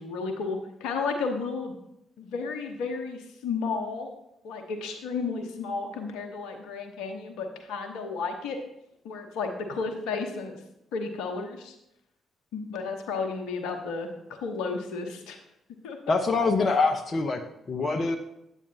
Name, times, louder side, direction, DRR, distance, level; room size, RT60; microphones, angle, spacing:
voice 1, 0.0-1.7 2.2-4.1 4.4-8.6 9.0-10.6 10.9-11.7 12.5-15.4 15.8-16.1, left 4 dB, 75° left, 5 dB, 1.0 m, -33 dB
voice 2, 16.1-17.4 17.7-18.2, left 3 dB, 45° left, 4 dB, 0.8 m, -24 dB
9.1 x 8.5 x 2.8 m, 0.81 s
hypercardioid pair, 40°, 0 cm